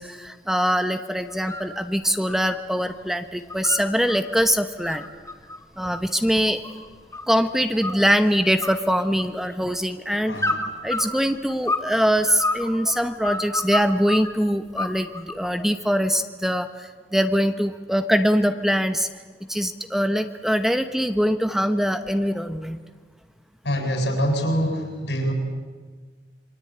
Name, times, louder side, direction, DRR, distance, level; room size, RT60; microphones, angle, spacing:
voice 1, 0.0-5.0 5.8-6.6 7.3-10.4 10.8-19.1 19.5-22.8, equal, ahead, 8 dB, 1.0 m, -23 dB
sound 1, 1.3-1.7 2.0-3.0 3.3-4.2 4.6-7.4 7.8-8.3 8.6-9.6 10.4-11.9 12.2-14.3 14.8-15.5, left 2 dB, 20° left, 2.3 m, -29 dB
voice 2, 10.2-10.6 23.6-25.3, equal, 75° left, 3 dB, 7.4 m, -25 dB
27.5 x 24.0 x 8.8 m, 1.5 s
head